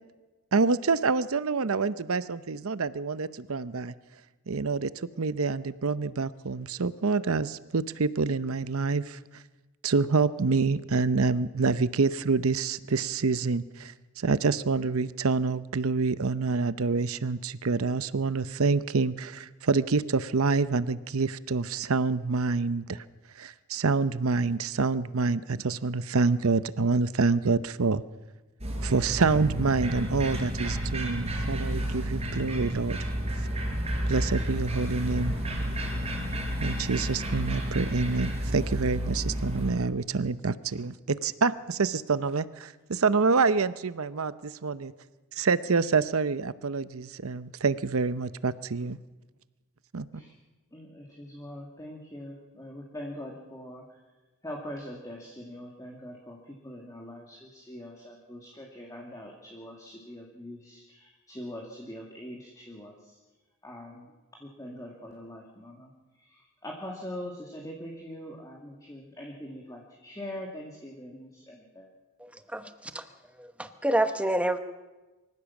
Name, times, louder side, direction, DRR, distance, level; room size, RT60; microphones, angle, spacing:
voice 1, 0.5-3.9 4.5-4.9 5.2-9.4 9.8-23.0 23.4-28.0 28.8-33.1 33.4-33.5 34.1-35.4 36.6-44.9 45.3-49.0 49.9-50.2, right 4 dB, 80° right, 15 dB, 0.8 m, -27 dB
sound 1, 28.6-39.7, equal, 30° right, 4.8 m, -31 dB
voice 2, 50.7-53.9 54.4-63.2 63.6-64.1 64.4-65.9 66.2-71.9, left 1 dB, 15° left, -1 dB, 2.2 m, -42 dB
voice 3, 72.2-73.0 73.4-74.6, right 1 dB, 5° right, 9 dB, 1.0 m, -28 dB
24.0 x 15.5 x 7.3 m, 1.2 s
head